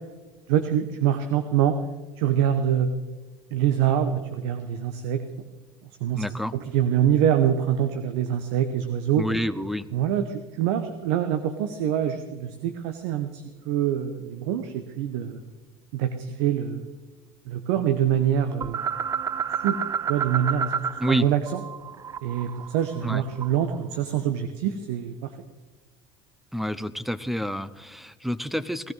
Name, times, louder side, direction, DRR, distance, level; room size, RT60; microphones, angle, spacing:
voice 1, 0.5-1.8 2.2-2.9 3.5-5.2 6.0-6.2 6.5-9.3 9.9-15.4 15.9-16.9 17.5-18.8 19.6-19.8 20.1-21.6 22.2-25.3, right 9 dB, 75° right, 9 dB, 1.0 m, -25 dB
voice 2, 6.1-6.5 9.2-9.9 21.0-21.3 23.0-23.2 26.5-28.9, equal, ahead, 16 dB, 0.7 m, -28 dB
sound 1, 18.6-21.2 21.5-23.8, right 7 dB, 25° right, 0.4 m, -30 dB
17.5 x 13.5 x 4.0 m, 1.2 s
supercardioid pair, 90°, 14 cm